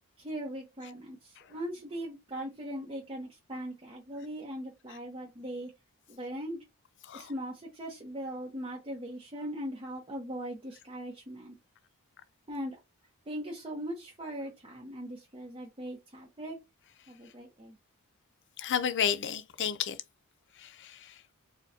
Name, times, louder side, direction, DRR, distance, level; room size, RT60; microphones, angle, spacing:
voice 1, 0.2-5.7 6.1-6.6 7.1-11.5 12.5-12.8 13.3-16.6 17.1-17.8, equal, 25° right, 0.8 m, -40 dB
voice 2, 18.6-20.0 20.6-21.2, left 8 dB, 55° left, 0.5 m, -32 dB
4.5 x 2.2 x 2.7 m
head